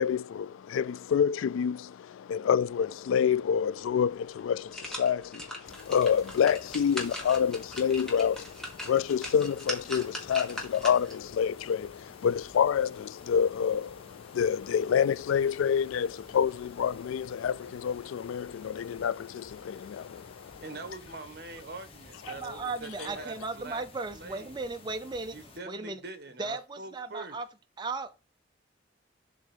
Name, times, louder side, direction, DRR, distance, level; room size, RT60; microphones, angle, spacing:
voice 1, 0.0-20.6, left 7 dB, 80° left, 0.3 m, -28 dB
sound 1, 4.4-11.3 11.7-11.8, equal, 5° left, 1.7 m, -40 dB
sound 2, 5.6-25.6, left 3 dB, 30° left, 0.9 m, -53 dB
voice 2, 20.6-23.8 24.1-24.6 25.3-27.4, right 3 dB, 55° right, 1.2 m, -43 dB
voice 3, 22.3-25.4 25.7-26.0 26.4-27.5 27.8-28.1, right 3 dB, 20° right, 0.5 m, -36 dB
7.6 x 3.4 x 5.5 m
head